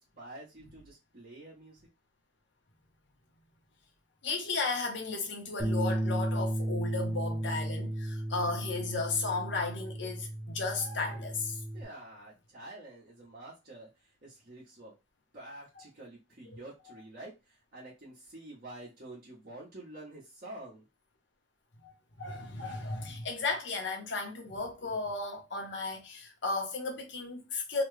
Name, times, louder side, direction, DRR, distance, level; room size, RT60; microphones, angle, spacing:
voice 1, 0.2-1.8 11.7-14.9 15.3-20.8, right 1 dB, 50° right, 1.1 m, -48 dB
voice 2, 4.2-11.6 16.5-16.6 21.8-21.9 22.2-27.8, left 3 dB, 65° left, 0.9 m, -34 dB
Bass guitar, 5.6-11.8, right 1 dB, 15° right, 0.7 m, -34 dB
3.0 x 2.2 x 3.2 m
head